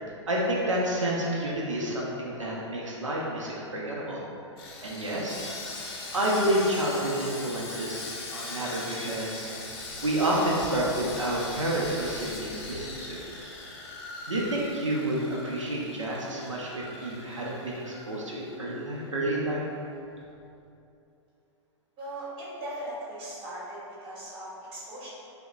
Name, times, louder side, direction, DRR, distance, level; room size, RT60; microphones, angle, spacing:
voice 1, 0.3-4.2 4.8-5.8 6.1-8.1 8.3-9.5 10.0-13.2 14.3-19.6, right 1 dB, 85° right, -4 dB, 0.5 m, -29 dB
Sawing, 4.6-18.8 19.1-19.3 19.7-19.8, left 2 dB, 50° left, 0.6 m, -40 dB
voice 2, 22.0-25.1, right 1 dB, 30° right, -9 dB, 1.4 m, -39 dB
5.5 x 2.1 x 2.4 m, 2.7 s
figure-of-eight pair, 105°, 16 cm